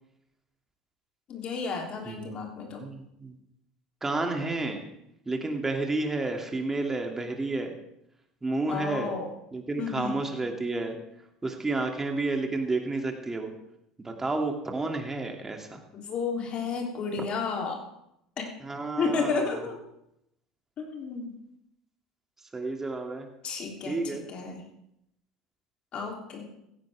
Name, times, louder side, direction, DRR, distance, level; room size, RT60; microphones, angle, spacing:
voice 1, 1.3-2.8 8.7-9.3 9.8-10.2 15.9-17.8 18.4-18.5 19.0-19.8 20.8-21.3 23.4-24.6 25.9-26.5, left 5 dB, 45° left, 1 dB, 3.3 m, -32 dB
voice 2, 2.1-2.4 2.7-3.4 4.0-4.9 5.3-7.8 8.4-9.1 9.5-11.0 11.4-13.5 14.0-15.8 18.6-19.5 22.5-23.3 23.8-24.2, right 2 dB, 15° right, 3 dB, 2.7 m, -31 dB
16.5 x 15.0 x 3.6 m, 0.81 s
figure-of-eight pair, 70°, 3 cm